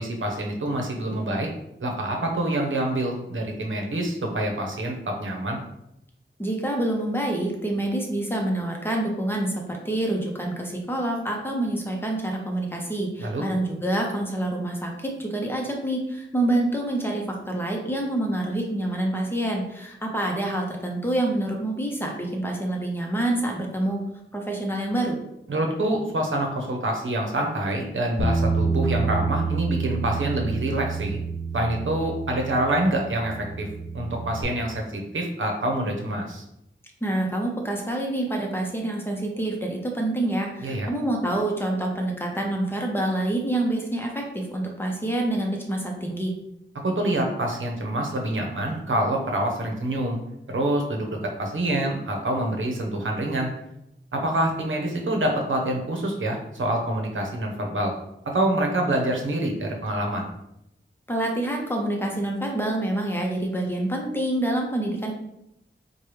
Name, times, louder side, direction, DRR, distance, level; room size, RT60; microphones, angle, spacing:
voice 1, 0.0-1.5 1.8-5.6 13.2-13.5 25.5-31.2 31.5-33.7 33.9-36.4 40.6-40.9 46.8-50.2 50.5-51.1 51.4-53.5 54.1-57.9 58.3-60.3, right 1 dB, 75° right, 1 dB, 0.8 m, -26 dB
voice 2, 6.4-24.0 24.3-25.2 37.0-46.3 61.1-65.1, right 1 dB, 10° left, 0 dB, 0.8 m, -27 dB
Bass guitar, 28.2-34.4, right 4 dB, 85° left, 0.6 m, -28 dB
4.6 x 2.3 x 3.2 m, 0.82 s
wide cardioid pair, 90°, 20 cm